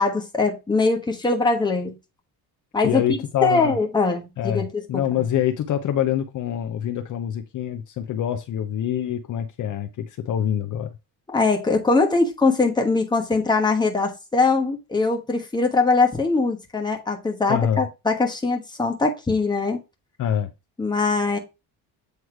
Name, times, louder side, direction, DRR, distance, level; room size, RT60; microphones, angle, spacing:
voice 1, 0.0-1.9 2.7-4.7 11.3-19.8 20.8-21.4, left 3 dB, 10° left, 1.2 m, -22 dB
voice 2, 2.8-3.7 4.4-10.9 17.5-17.8 20.2-20.5, left 10 dB, 50° left, 0.7 m, -25 dB
8.0 x 3.2 x 4.7 m
cardioid pair, 140°, 39 cm